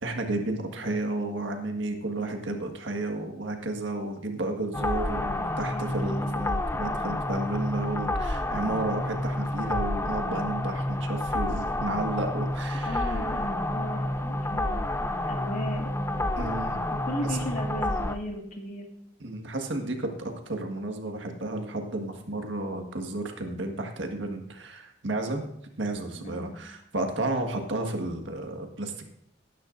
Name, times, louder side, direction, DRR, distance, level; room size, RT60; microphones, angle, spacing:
voice 1, 0.0-13.3 16.4-16.8 17.3-17.5 19.2-25.5 25.8-29.1, right 2 dB, 85° right, 4 dB, 1.6 m, -32 dB
voice 2, 2.2-2.7 5.4-6.4 12.9-14.9 15.3-16.3 17.0-18.9 26.2-26.6, equal, 45° left, 1 dB, 2.0 m, -36 dB
sound 1, 4.7-18.1, left 1 dB, 15° left, 0.5 m, -29 dB
18.5 x 10.0 x 2.6 m, 0.72 s
head